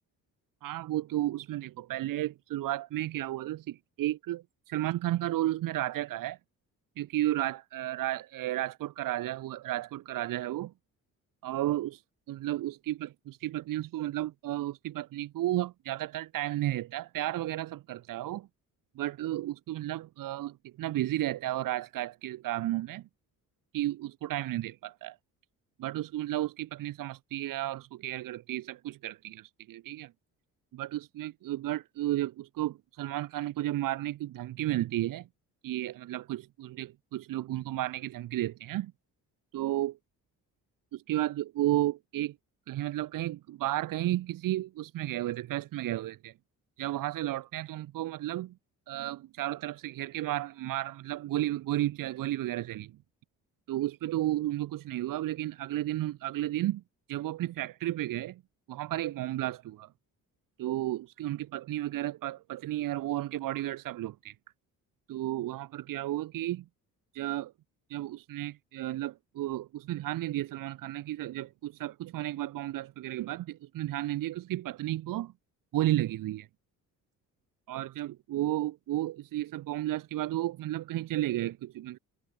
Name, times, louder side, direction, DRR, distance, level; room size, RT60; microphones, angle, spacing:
voice 1, 0.6-6.4 7.0-10.7 11.4-12.0 12.3-18.5 19.0-23.0 23.7-25.2 25.8-30.1 30.7-35.3 35.6-38.9 39.5-40.0 40.9-42.3 42.7-46.3 46.8-48.5 48.9-52.9 53.7-56.8 57.1-58.4 58.7-59.9 60.6-64.3 65.1-66.6 67.1-67.5 67.9-75.3 75.7-76.5 77.7-82.0, right 14 dB, 70° right, 0.8 m, -33 dB
cardioid pair, 100°, 34 cm